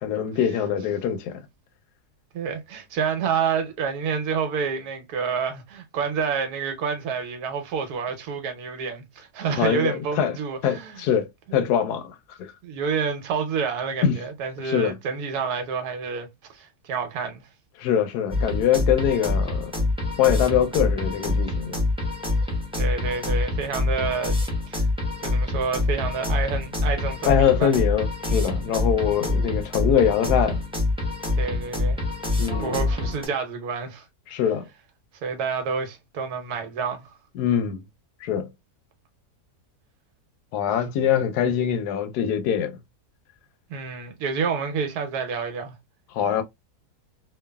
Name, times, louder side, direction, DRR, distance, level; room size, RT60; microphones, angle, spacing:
voice 1, 0.0-1.4 9.6-10.4 10.6-12.1 12.4-12.5 14.0-14.2 14.6-15.0 17.8-19.7 20.2-21.8 27.3-30.6 32.4-32.8 34.3-34.6 37.3-37.8 38.2-38.5 40.5-42.8 46.1-46.4, left 9 dB, 85° left, 1.1 m, -23 dB
voice 2, 2.3-11.0 12.6-17.4 22.8-24.4 24.7-24.8 25.2-27.7 28.7-29.0 31.4-32.0 32.6-34.1 35.2-37.1 43.7-45.7, right 6 dB, 80° right, 1.3 m, -28 dB
sound 1, 18.3-33.3, left 2 dB, 5° right, 0.4 m, -26 dB
3.0 x 2.3 x 2.2 m
omnidirectional pair, 1.6 m